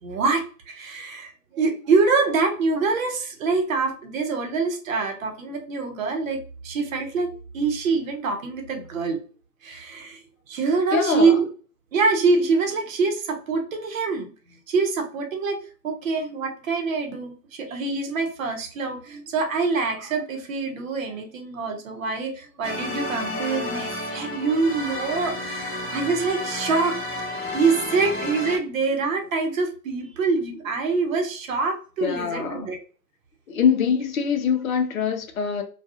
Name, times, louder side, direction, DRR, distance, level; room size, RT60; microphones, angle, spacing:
voice 1, 0.0-9.2 9.6-10.2 10.5-11.5 11.9-14.3 14.7-27.0 27.5-32.8, right 4 dB, 55° right, 0.8 m, -25 dB
voice 2, 10.9-11.4 32.0-32.7 33.5-35.6, left 6 dB, 60° left, 0.7 m, -23 dB
sound 1, 22.6-28.6, left 1 dB, 10° left, 0.9 m, -31 dB
2.3 x 2.3 x 2.7 m
figure-of-eight pair, 115°, 48 cm